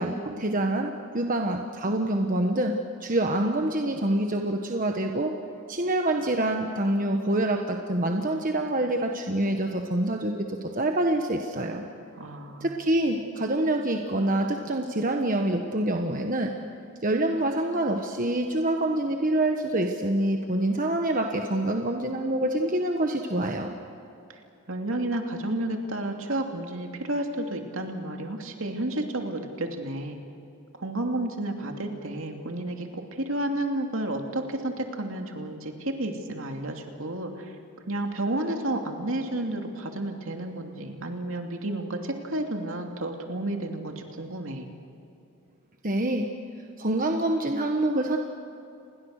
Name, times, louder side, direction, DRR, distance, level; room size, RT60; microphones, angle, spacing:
voice 1, 0.0-2.7 3.0-5.3 5.7-11.9 12.6-16.5 17.0-23.7 45.8-46.3 46.8-48.2, right 1 dB, 35° right, 3 dB, 1.3 m, -26 dB
voice 2, 12.1-12.7 24.3-24.4 24.7-30.2 30.8-37.6 37.8-44.7, right 1 dB, 65° right, 3 dB, 2.8 m, -31 dB
29.5 x 21.5 x 6.6 m, 2.7 s
head